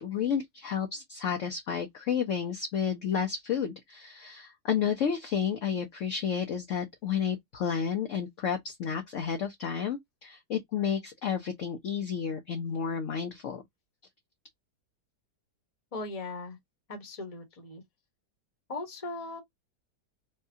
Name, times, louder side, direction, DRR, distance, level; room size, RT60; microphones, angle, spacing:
voice 1, 0.0-13.6, left 7 dB, 60° left, 0.9 m, -31 dB
voice 2, 15.9-16.6 16.9-17.8 18.7-19.4, left 2 dB, 25° left, 1.0 m, -38 dB
4.7 x 2.2 x 2.7 m
omnidirectional pair, 1.8 m